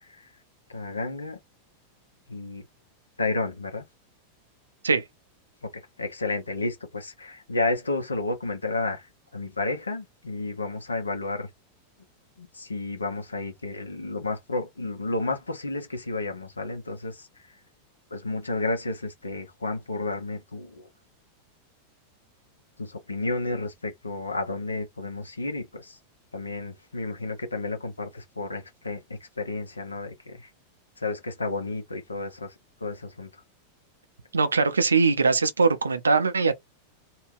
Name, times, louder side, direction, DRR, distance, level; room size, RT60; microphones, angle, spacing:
voice 1, 0.7-1.4 2.3-2.6 3.2-3.9 5.6-5.7 6.0-11.5 12.4-17.5 18.1-20.9 22.8-26.0 26.3-30.5 31.0-32.5 32.8-33.3, left 2 dB, 80° left, 1.0 m, -31 dB
voice 2, 34.3-36.5, right 4 dB, 75° right, 0.6 m, -21 dB
2.7 x 2.4 x 3.3 m
figure-of-eight pair, 90°, 0 cm